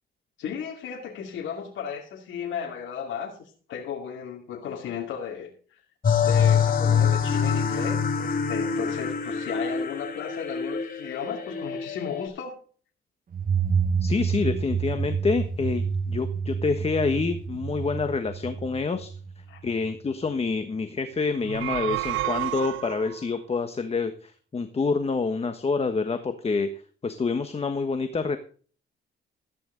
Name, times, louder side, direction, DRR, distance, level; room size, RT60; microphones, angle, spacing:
voice 1, 0.4-5.8 6.2-12.6 19.5-19.6, left 7 dB, 75° left, -1 dB, 2.6 m, -35 dB
sound 1, 6.0-12.3, left 6 dB, 45° left, 3.0 m, -25 dB
sound 2, 13.3-19.9, right 6 dB, 45° right, 1.4 m, -28 dB
voice 2, 14.0-19.1 19.6-28.4, left 4 dB, 30° left, 8 dB, 1.3 m, -27 dB
sound 3, 21.3-23.2, right 15 dB, 80° right, 0.5 m, -30 dB
14.5 x 10.0 x 3.9 m, 0.42 s
cardioid pair, 90°, 20 cm